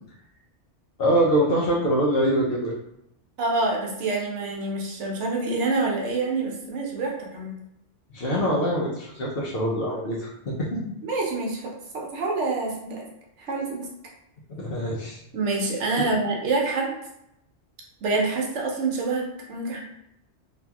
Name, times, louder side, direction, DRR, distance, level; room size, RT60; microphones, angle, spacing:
voice 1, 1.0-2.7 8.1-10.8 14.5-15.2 16.0-16.1, right 1 dB, 60° left, -4 dB, 0.8 m, -24 dB
voice 2, 3.4-7.5 11.0-11.6 11.9-13.0 13.4-13.9 15.3-16.9 18.0-19.8, right 3 dB, 80° right, -1 dB, 1.0 m, -26 dB
2.9 x 2.6 x 2.2 m, 0.80 s
omnidirectional pair, 1.2 m